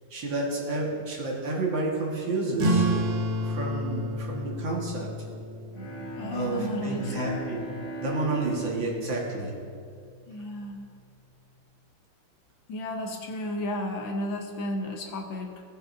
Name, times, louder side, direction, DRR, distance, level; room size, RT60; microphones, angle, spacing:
voice 1, 0.1-2.9 3.4-5.1 6.3-7.6 8.0-9.5, right 2 dB, 70° right, -2 dB, 2.3 m, -30 dB
sound 1, 2.6-7.6, right 1 dB, 55° right, 1.4 m, -30 dB
Bowed string instrument, 5.7-10.6, right 3 dB, 45° left, 2.0 m, -38 dB
voice 2, 6.2-7.4 10.3-10.9 12.7-15.6, left 1 dB, 75° left, 2 dB, 1.7 m, -33 dB
17.5 x 6.7 x 2.6 m, 2.3 s
omnidirectional pair, 2.2 m